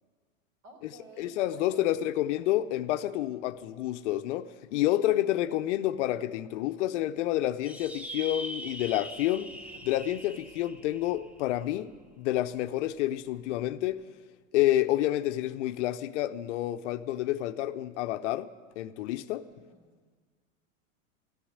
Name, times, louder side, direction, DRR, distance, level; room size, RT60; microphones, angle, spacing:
voice 1, 0.6-1.9 19.5-20.2, right 2 dB, 50° right, 3.8 m, -53 dB
voice 2, 1.2-9.5 9.8-14.0 14.5-18.5 18.8-19.4, left 14 dB, 60° left, 0.7 m, -29 dB
sound 1, 7.6-12.4, equal, 5° right, 0.9 m, -42 dB
14.0 x 10.0 x 9.3 m
hypercardioid pair, 100°, 40 cm